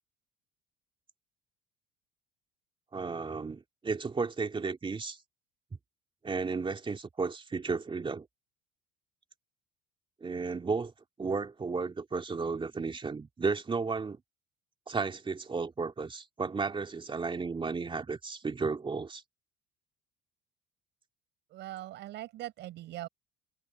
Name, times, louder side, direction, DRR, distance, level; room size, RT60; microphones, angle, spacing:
voice 1, 2.9-5.2 6.2-8.3 10.2-10.9 11.2-14.2 14.9-19.2, right 4 dB, 25° right, 2.8 m, -33 dB
voice 2, 21.5-23.1, right 15 dB, 65° right, 4.8 m, -41 dB
supercardioid pair, 85°, 20 cm